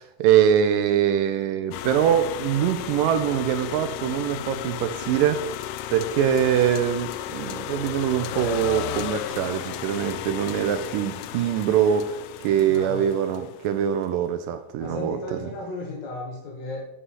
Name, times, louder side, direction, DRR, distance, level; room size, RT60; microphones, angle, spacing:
voice 1, 0.0-5.5 5.9-12.2 12.4-15.4, right 9 dB, 80° right, 9 dB, 2.2 m, -23 dB
sound 1, 1.7-13.7, left 11 dB, 80° left, 1.9 m, -34 dB
voice 2, 12.5-13.4 14.8-16.8, left 2 dB, 60° left, -1 dB, 2.4 m, -35 dB
9.7 x 5.6 x 5.6 m, 0.94 s
omnidirectional pair, 4.1 m